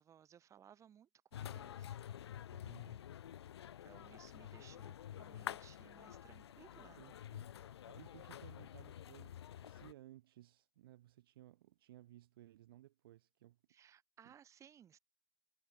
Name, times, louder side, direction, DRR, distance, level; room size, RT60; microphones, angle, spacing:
voice 1, 0.0-2.0 3.6-7.2 13.7-15.0, right 9 dB, 20° right, 6.2 m, -62 dB
sound 1, 1.3-9.9, left 10 dB, 55° left, 0.9 m, -49 dB
voice 2, 2.5-3.1 6.7-13.6 14.2-14.3, right 14 dB, 45° right, 1.4 m, -60 dB
figure-of-eight pair, 110°, 16 cm